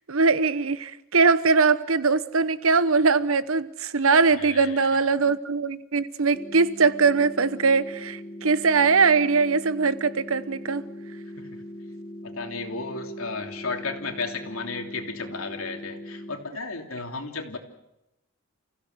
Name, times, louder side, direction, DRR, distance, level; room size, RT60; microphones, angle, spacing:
voice 1, 0.1-10.8, right 4 dB, 80° right, 1.0 m, -21 dB
voice 2, 4.4-5.0 11.4-11.5 12.2-17.6, left 3 dB, 85° left, 3.1 m, -34 dB
sound 1, 6.3-16.3, left 1 dB, 30° left, 3.6 m, -40 dB
29.5 x 16.0 x 8.0 m
head